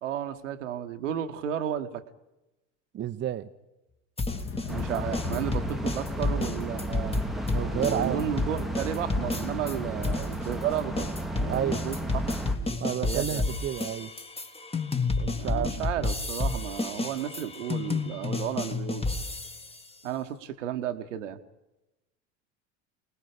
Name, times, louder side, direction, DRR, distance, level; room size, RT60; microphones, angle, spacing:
voice 1, 0.0-2.0 4.6-7.2 7.7-12.0 12.5-13.4 15.3-19.1 20.0-21.4, right 10 dB, 75° right, 7 dB, 1.4 m, -33 dB
voice 2, 2.9-3.5 4.9-5.0 7.5-8.2 11.5-11.8 12.8-14.1 15.2-15.8, right 10 dB, 30° right, 8 dB, 0.9 m, -31 dB
sound 1, 4.2-9.8 10.0-19.8, left 3 dB, 15° left, 1.6 m, -31 dB
Thunder / Rain, 4.3-12.7, left 6 dB, 35° left, 2.2 m, -42 dB
sound 2, 4.7-12.6, right 1 dB, ahead, 1.2 m, -34 dB
28.5 x 20.0 x 5.1 m, 0.98 s
figure-of-eight pair, 70°, 37 cm